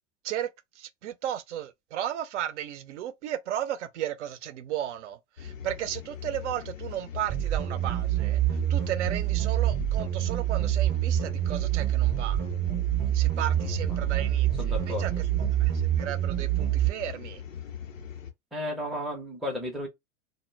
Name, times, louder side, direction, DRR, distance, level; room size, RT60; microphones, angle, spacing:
voice 1, 0.8-8.4 8.7-12.4 13.1-14.5 14.9-15.1 15.4-15.7 16.0-17.4, right 11 dB, 65° right, 0.6 m, -34 dB
sound 1, 5.4-18.3, left 8 dB, 85° left, 0.6 m, -40 dB
sound 2, 7.3-16.9, right 14 dB, 35° right, 0.7 m, -26 dB
voice 2, 14.6-15.3 18.5-19.9, left 1 dB, ahead, 0.5 m, -34 dB
2.1 x 2.0 x 3.1 m
figure-of-eight pair, 95°, 38 cm